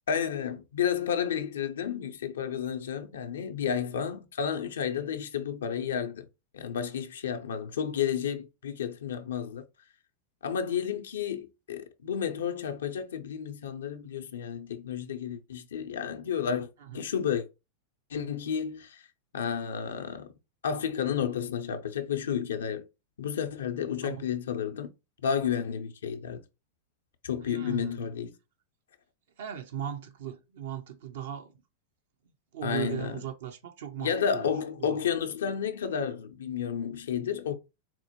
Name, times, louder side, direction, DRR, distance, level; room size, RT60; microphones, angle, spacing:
voice 1, 0.1-6.2 6.5-9.6 10.4-16.7 16.9-17.5 18.1-19.0 19.3-20.3 20.6-22.9 23.2-24.9 25.2-26.4 27.2-28.4 32.6-33.2 34.0-37.5, left 8 dB, 80° left, 0.5 m, -31 dB
voice 2, 27.5-28.1 29.4-31.5 32.5-34.5 34.8-35.0, right 10 dB, 70° right, 0.6 m, -38 dB
4.2 x 2.1 x 2.9 m
hypercardioid pair, 100°, 0 cm